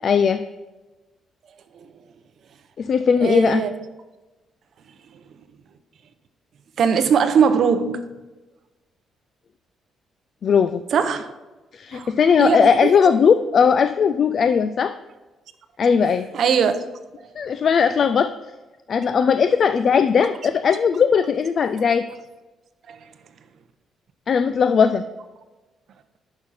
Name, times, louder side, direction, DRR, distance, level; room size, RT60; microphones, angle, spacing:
voice 1, 0.0-0.4 2.8-3.6 10.4-10.8 11.7-14.9 15.8-16.2 17.4-18.3 18.9-22.1 24.3-25.0, left 6 dB, 40° left, 10 dB, 0.3 m, -18 dB
voice 2, 3.2-3.7 6.8-8.1 10.9-11.3 11.9-12.1 12.4-13.1 16.3-16.8 22.9-23.0, right 6 dB, 55° right, 10 dB, 0.7 m, -20 dB
10.5 x 6.1 x 4.0 m, 1.2 s
cardioid pair, 160°, 0 cm